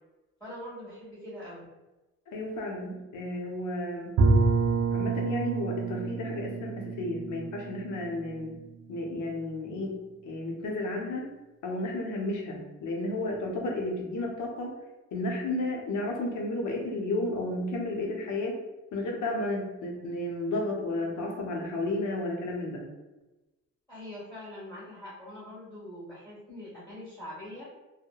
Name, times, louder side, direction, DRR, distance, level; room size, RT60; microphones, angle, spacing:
voice 1, 0.4-1.6 23.9-27.6, left 1 dB, 5° left, -10 dB, 1.4 m, -43 dB
voice 2, 2.3-4.1 4.9-8.5 8.9-9.9 10.2-11.3 11.6-14.7 15.1-18.6 18.9-22.8, left 2 dB, 75° left, 0 dB, 0.7 m, -32 dB
Bowed string instrument, 4.2-9.0, right 4 dB, 60° right, 0.5 m, -28 dB
2.7 x 2.1 x 2.3 m, 1.1 s
cardioid pair, 90°, 30 cm